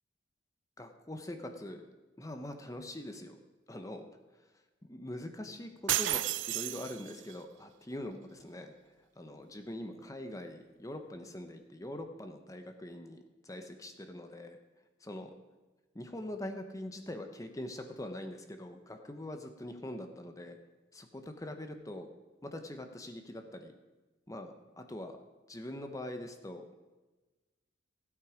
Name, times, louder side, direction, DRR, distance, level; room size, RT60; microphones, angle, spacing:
voice 1, 0.8-1.8 2.2-3.4 3.7-4.1 4.8-6.2 6.5-8.7 9.2-14.6 15.0-15.3 15.9-20.6 20.9-22.1 22.4-23.7 24.3-25.2 25.5-26.7, left 1 dB, 20° left, 6 dB, 0.9 m, -43 dB
sound 1, 5.9-7.3, right 14 dB, 80° right, 0.4 m, -32 dB
16.0 x 8.4 x 5.0 m, 1.2 s
head